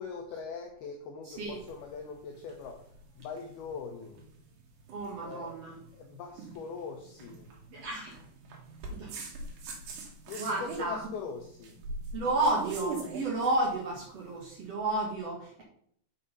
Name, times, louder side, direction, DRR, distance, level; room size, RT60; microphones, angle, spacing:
voice 1, 0.0-4.2 5.2-5.6 5.9-7.5 10.3-11.8, left 5 dB, 85° left, 2.2 m, -42 dB
voice 2, 1.3-1.6 4.9-5.8 7.7-8.1 8.9-9.2 10.4-11.0 12.1-15.6, right 2 dB, 90° right, 1.4 m, -32 dB
sound 1, 1.4-14.6, right 3 dB, 65° right, 3.4 m, -43 dB
6.7 x 6.6 x 5.3 m
omnidirectional pair, 5.7 m